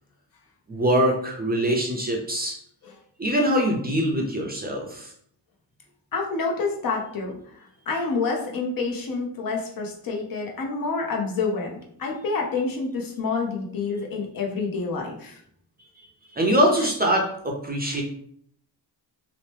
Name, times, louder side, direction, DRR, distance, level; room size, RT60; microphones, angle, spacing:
voice 1, 0.7-2.6 3.2-5.1 16.3-18.0, equal, 25° right, 0 dB, 0.5 m, -23 dB
voice 2, 6.1-15.4 17.8-18.0, left 4 dB, 55° left, 0 dB, 0.7 m, -28 dB
2.9 x 2.1 x 3.2 m, 0.65 s
cardioid pair, 100°, 42 cm